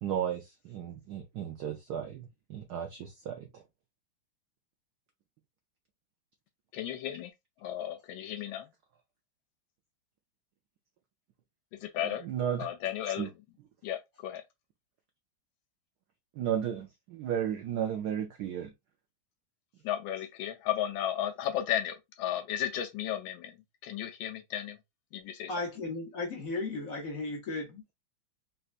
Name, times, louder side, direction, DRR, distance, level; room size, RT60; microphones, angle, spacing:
voice 1, 0.0-3.6 12.2-12.7 13.0-13.3 16.4-18.7, right 9 dB, 80° right, 0.9 m, -34 dB
voice 2, 6.7-7.3 7.6-8.7 11.8-12.3 12.6-13.3 13.8-14.4 19.8-23.5 23.8-24.8 25.1-25.5, left 11 dB, 75° left, 1.3 m, -34 dB
voice 3, 25.5-27.9, left 3 dB, 60° left, 0.9 m, -35 dB
4.1 x 2.2 x 2.4 m
omnidirectional pair, 2.3 m